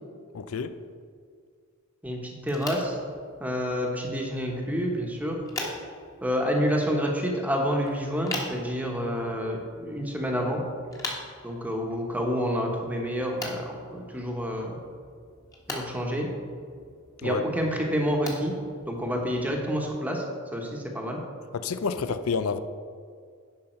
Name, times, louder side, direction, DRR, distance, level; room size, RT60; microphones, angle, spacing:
voice 1, 0.3-0.7 17.2-17.4 21.5-22.6, left 5 dB, 75° left, 11 dB, 0.5 m, -29 dB
voice 2, 2.0-3.0 3.4-5.4 6.2-10.6 11.4-14.8 15.7-16.3 17.2-18.5 18.9-20.2 20.5-21.2, equal, 5° right, 0 dB, 1.2 m, -28 dB
sound 1, 2.4-19.7, left 2 dB, 15° left, 1.3 m, -42 dB
10.5 x 5.6 x 4.5 m, 2.1 s
head